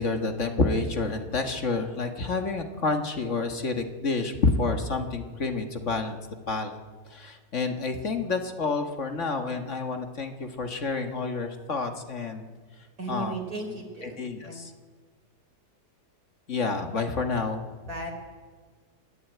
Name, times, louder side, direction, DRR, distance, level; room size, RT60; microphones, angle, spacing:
voice 1, 0.0-6.2 6.5-6.8 7.1-12.5 13.1-13.3 14.0-14.7 16.5-17.6, left 3 dB, 50° left, 5 dB, 1.9 m, -29 dB
voice 2, 13.0-14.6 17.9-18.1, right 2 dB, 65° right, 2 dB, 4.6 m, -36 dB
27.5 x 11.5 x 9.4 m, 1.5 s
omnidirectional pair, 1.7 m